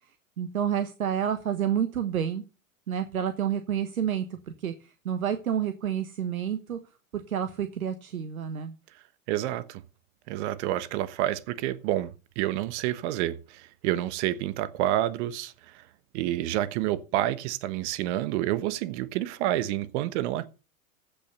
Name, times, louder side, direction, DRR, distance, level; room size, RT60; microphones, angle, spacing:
voice 1, 0.4-2.4 2.9-6.8 7.1-8.7, right 9 dB, 85° right, 1.3 m, -29 dB
voice 2, 9.3-9.8 10.3-15.9 16.1-20.5, right 14 dB, 55° right, 1.2 m, -29 dB
15.0 x 5.8 x 6.7 m
hypercardioid pair, 100°, 41 cm